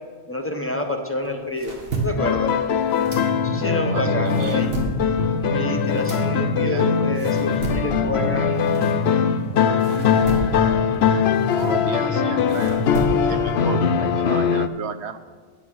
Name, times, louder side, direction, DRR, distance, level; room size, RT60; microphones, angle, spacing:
voice 1, 0.3-1.8 2.0-2.5 3.4-4.7 5.4-8.6, left 2 dB, 15° left, 4 dB, 0.9 m, -28 dB
sound 1, 1.2-3.8 4.1-9.4 9.8-13.5, right 2 dB, 65° right, 1.8 m, -32 dB
sound 2, 2.2-14.7, left 7 dB, 75° left, 0.8 m, -21 dB
sound 3, 3.0-14.0, left 1 dB, 5° right, 2.2 m, -31 dB
voice 2, 3.9-4.7 6.7-7.0 11.5-13.0 13.2-15.2, right 6 dB, 85° right, 10 dB, 1.0 m, -33 dB
9.7 x 8.6 x 6.1 m, 1.5 s
omnidirectional pair, 1.1 m